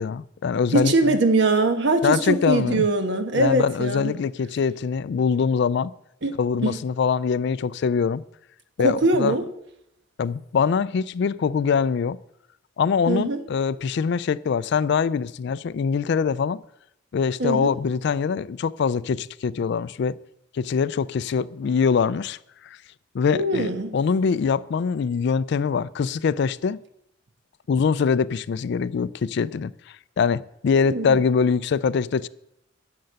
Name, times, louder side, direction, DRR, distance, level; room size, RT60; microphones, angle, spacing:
voice 1, 0.0-1.2 2.0-2.9 3.3-5.9 6.4-8.2 8.8-9.3 10.2-12.2 12.8-16.6 17.1-20.2 20.5-22.4 22.6-22.8 23.1-26.8 27.7-29.7 30.2-32.3, left 6 dB, 60° left, 0.3 m, -23 dB
voice 2, 0.7-4.2 6.2-6.8 8.8-9.5 13.1-13.4 17.4-17.7 23.3-23.9 30.8-31.2, right 2 dB, 60° right, 1.1 m, -22 dB
10.5 x 6.8 x 7.8 m
head